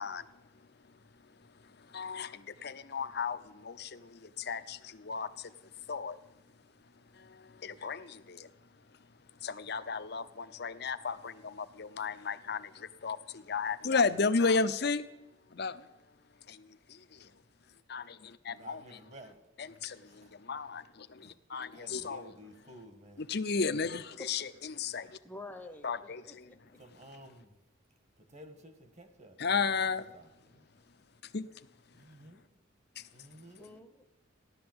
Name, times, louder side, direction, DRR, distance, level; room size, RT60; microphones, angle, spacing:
voice 1, 0.0-6.2 6.9-15.1 15.5-15.9 16.4-17.4 17.9-18.8 19.8-22.3 23.2-25.2 25.8-26.5 29.4-30.0 31.2-31.7 32.0-32.1 33.0-33.1, left 4 dB, 50° left, 0.7 m, -35 dB
voice 2, 18.5-20.3 21.2-21.4 21.7-23.3 26.8-27.6 28.2-30.7 31.9-32.6 33.1-33.8, right 1 dB, 35° right, 1.6 m, -54 dB
voice 3, 25.2-26.8 33.6-34.0, left 2 dB, 5° left, 0.9 m, -48 dB
15.5 x 11.5 x 7.9 m
head